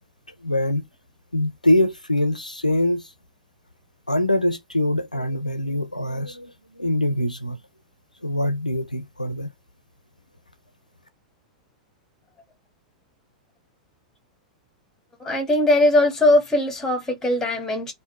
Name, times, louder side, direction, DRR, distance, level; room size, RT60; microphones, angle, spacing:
voice 1, 0.4-0.8 1.3-3.1 4.1-7.6 8.2-9.5, left 1 dB, 90° left, 0.5 m, -23 dB
voice 2, 15.2-17.9, left 1 dB, 10° left, 1.8 m, -20 dB
3.7 x 2.7 x 3.0 m
figure-of-eight pair, 95°, 4 cm